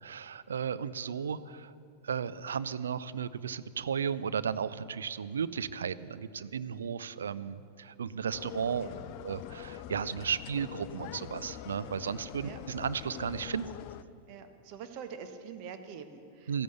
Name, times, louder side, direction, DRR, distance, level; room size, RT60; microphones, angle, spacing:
voice 1, 0.0-1.7 2.0-8.9 9.2-13.7 16.5-16.6, right 7 dB, 70° right, 15 dB, 0.4 m, -34 dB
sound 1, 8.3-14.0, left 12 dB, 45° left, 0.4 m, -44 dB
voice 2, 14.3-16.6, right 6 dB, 45° right, 8 dB, 1.1 m, -45 dB
14.0 x 11.0 x 6.9 m, 2.5 s
figure-of-eight pair, 90°, 0 cm